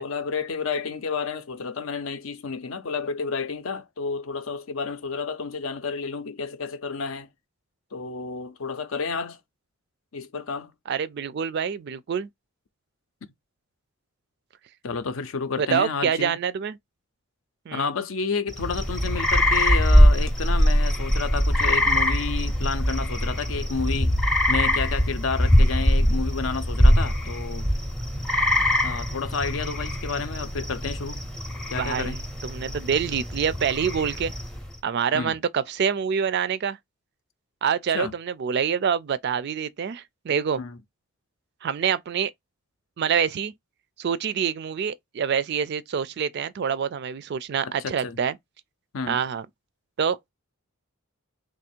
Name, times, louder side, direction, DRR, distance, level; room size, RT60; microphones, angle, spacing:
voice 1, 0.0-7.3 7.9-9.4 10.1-10.7 13.2-13.3 14.8-16.4 17.7-24.1 24.5-27.7 28.8-31.2 31.7-32.2 35.1-35.4 37.9-38.2 40.6-40.8 47.6-48.2 48.9-49.2, left 5 dB, 65° left, 0.5 m, -30 dB
voice 2, 10.9-12.3 15.6-16.8 17.7-17.8 31.7-32.2 32.4-34.3 34.8-36.8 37.6-40.6 41.6-42.3 43.0-43.5 44.0-48.3 49.1-49.5 50.0-50.3, right 7 dB, 50° right, 0.3 m, -26 dB
sound 1, 18.5-34.7, equal, 5° left, 0.5 m, -22 dB
3.1 x 2.4 x 4.3 m
head